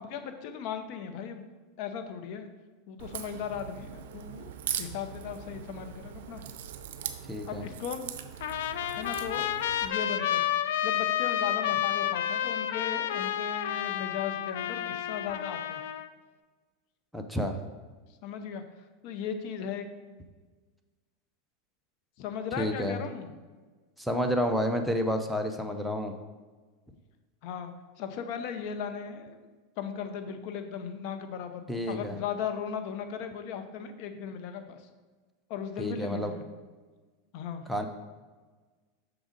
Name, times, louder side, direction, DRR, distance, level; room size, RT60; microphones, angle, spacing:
voice 1, 0.0-1.5 1.8-2.5 2.9-4.5 4.8-6.4 7.5-8.0 8.9-10.4 10.8-15.8 18.2-18.6 19.0-19.9 22.2-23.3 27.4-29.5 29.8-34.9 35.5-36.4 37.3-37.6, left 7 dB, 55° left, 8 dB, 0.7 m, -37 dB
Crack, 3.0-9.9, right 9 dB, 75° right, 0.5 m, -40 dB
voice 2, 7.3-7.6 17.1-17.5 22.6-23.0 24.0-26.1 31.7-32.2 35.8-36.3 37.7-37.9, equal, ahead, 3 dB, 0.6 m, -30 dB
Trumpet, 8.4-16.1, left 11 dB, 80° left, 0.3 m, -30 dB
6.1 x 3.8 x 5.1 m, 1.4 s
supercardioid pair, 125°, 0 cm